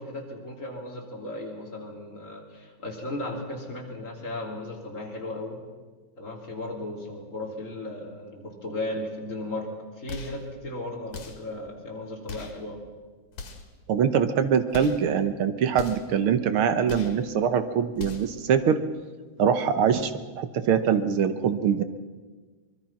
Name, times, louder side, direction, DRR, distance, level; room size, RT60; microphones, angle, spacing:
voice 1, 0.0-5.6 6.2-9.7 10.0-12.8, left 1 dB, 25° left, 0 dB, 3.6 m, -36 dB
sound 1, 10.1-10.5 11.1-11.5 12.3-12.6 13.3-13.8 14.7-15.1 15.7-16.2 16.9-17.2 17.9-18.4, left 4 dB, 80° left, 3.4 m, -40 dB
voice 2, 13.9-18.8 19.4-21.8, right 7 dB, 65° right, 10 dB, 1.5 m, -23 dB
24.0 x 21.5 x 5.9 m, 1.4 s
omnidirectional pair, 3.3 m